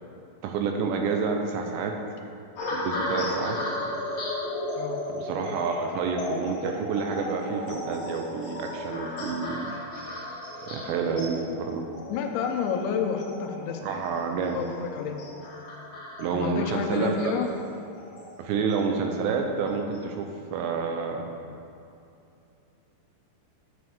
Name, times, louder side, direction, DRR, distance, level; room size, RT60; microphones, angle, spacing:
voice 1, 0.4-2.0 2.7-3.6 5.1-9.7 10.7-11.9 13.8-14.6 16.2-17.3 18.4-21.3, right 5 dB, 80° right, 3 dB, 2.7 m, -29 dB
sound 1, 2.6-19.0 19.7-20.0, left 1 dB, 50° left, 2.4 m, -35 dB
voice 2, 12.1-14.0 14.5-15.2 16.3-17.5, left 7 dB, 85° left, 4 dB, 2.9 m, -29 dB
10.5 x 7.8 x 3.4 m, 2.6 s
omnidirectional pair, 5.3 m